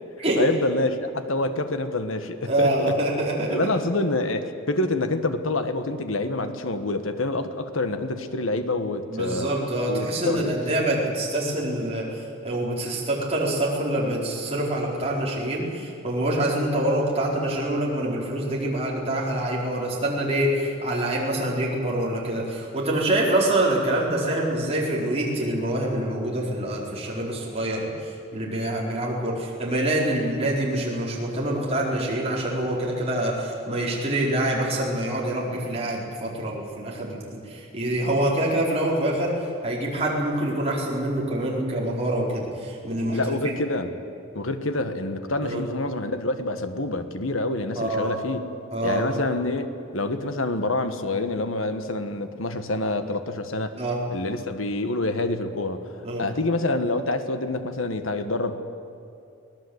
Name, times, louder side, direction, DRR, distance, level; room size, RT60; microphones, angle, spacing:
voice 1, 0.3-3.0 3.5-9.5 9.9-10.6 43.1-44.0 44.4-48.4 48.8-53.7 54.1-55.9 56.2-58.6, left 2 dB, 75° left, 9 dB, 1.6 m, -27 dB
voice 2, 2.5-3.7 9.1-43.6 45.4-45.6 47.8-48.2 48.7-49.2 53.8-54.0 56.0-56.2, right 1 dB, 30° right, -4 dB, 4.7 m, -26 dB
24.0 x 18.0 x 8.2 m, 2.7 s
head